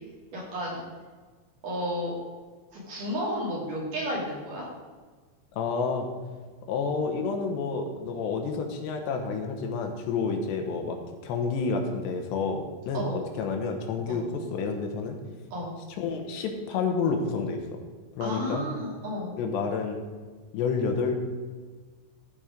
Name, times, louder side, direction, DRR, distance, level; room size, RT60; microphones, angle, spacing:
voice 1, 0.3-0.8 1.6-2.1 2.7-4.7 12.9-13.2 14.1-14.2 15.5-15.7 18.2-19.3, equal, 50° right, -5 dB, 3.8 m, -32 dB
voice 2, 5.5-6.1 6.7-11.0 11.2-15.2 16.0-17.6 18.2-18.6 19.4-20.0 20.5-21.1, left 4 dB, 80° left, 4 dB, 3.2 m, -29 dB
14.5 x 5.4 x 5.1 m, 1.4 s
omnidirectional pair, 5.0 m